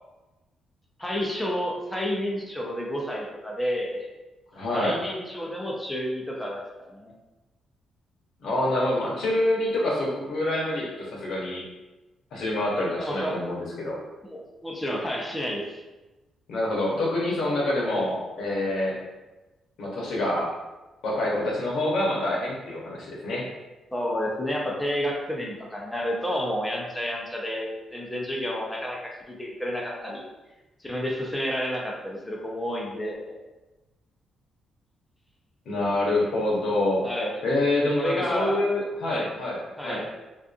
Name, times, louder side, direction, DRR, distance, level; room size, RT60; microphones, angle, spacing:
voice 1, 1.0-4.1 4.7-6.6 6.9-7.1 13.0-13.5 14.2-15.8 17.8-18.0 23.9-30.2 30.8-33.4 37.0-37.4 37.9-38.6 39.1-39.3 39.8-40.1, equal, 10° left, -2 dB, 0.6 m, -30 dB
voice 2, 4.5-5.0 8.4-11.6 12.3-14.0 16.5-19.0 19.8-20.5 21.0-23.4 35.7-37.1 37.4-40.0, left 1 dB, 75° left, -4 dB, 0.8 m, -26 dB
2.4 x 2.4 x 2.4 m, 1.1 s
supercardioid pair, 60°, 0 cm